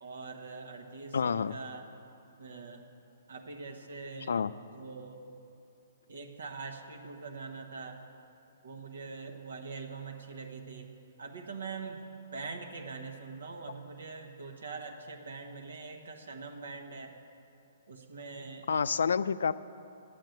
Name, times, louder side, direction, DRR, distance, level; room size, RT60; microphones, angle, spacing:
voice 1, 0.0-1.9 2.4-2.8 3.3-4.4 4.7-5.2 6.1-8.0 8.6-10.9 11.2-12.0 12.3-17.1 17.9-18.7, right 4 dB, 80° right, 2 dB, 1.2 m, -43 dB
voice 2, 1.1-1.6 4.3-4.5 18.7-19.5, left 6 dB, 75° left, 16 dB, 0.3 m, -28 dB
9.1 x 7.6 x 9.0 m, 2.9 s
hypercardioid pair, 135°, 0 cm